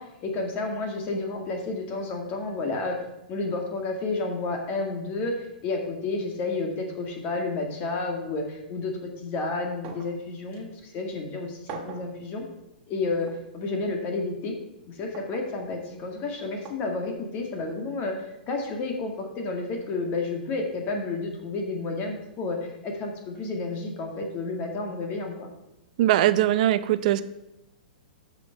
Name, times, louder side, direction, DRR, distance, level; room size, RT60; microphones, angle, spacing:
voice 1, 0.0-3.0 3.3-12.4 12.9-14.5 14.9-18.1 18.5-25.5, left 3 dB, 35° left, 3 dB, 1.9 m, -31 dB
sound 1, 9.8-10.2 10.5-10.6 11.7-12.1 13.3-13.4 15.1-15.5 16.6-16.8 18.1-18.2, right 5 dB, 35° right, 1.7 m, -41 dB
voice 2, 26.0-27.2, right 13 dB, 55° right, 13 dB, 0.7 m, -21 dB
8.0 x 6.1 x 6.9 m, 0.93 s
hypercardioid pair, 125°, 5 cm